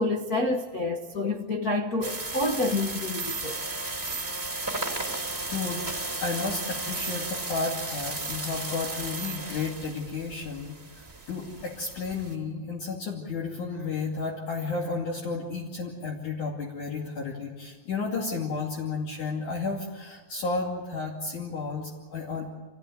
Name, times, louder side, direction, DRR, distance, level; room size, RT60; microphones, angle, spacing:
voice 1, 0.0-3.6, left 2 dB, 85° left, 0.8 m, -28 dB
sound 1, 2.0-12.3, right 2 dB, 5° right, 3.2 m, -34 dB
voice 2, 4.7-5.1 5.5-22.5, left 4 dB, 60° left, 3.9 m, -32 dB
28.0 x 16.5 x 9.3 m
omnidirectional pair, 4.0 m